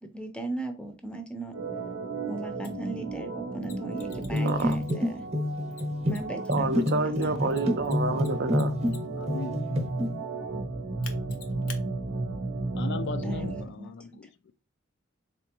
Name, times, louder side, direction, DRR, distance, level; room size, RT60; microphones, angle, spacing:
voice 1, 0.0-1.5 2.3-5.2 6.1-7.5 13.2-13.9, right 2 dB, 5° left, 0.6 m, -37 dB
Organ, 1.5-13.7, right 3 dB, 90° right, 0.7 m, -34 dB
Mechanisms, 2.6-2.7 3.6-5.2 5.7-9.2 11.0-11.8, left 7 dB, 85° left, 0.8 m, -47 dB
sound 1, 4.3-9.0 9.3-10.1, left 1 dB, 30° right, 0.8 m, -28 dB
voice 2, 4.4-4.8 6.5-8.8, right 3 dB, 50° right, 0.5 m, -28 dB
voice 3, 9.1-9.6 12.7-14.3, left 5 dB, 55° left, 0.3 m, -37 dB
3.8 x 3.4 x 2.9 m
head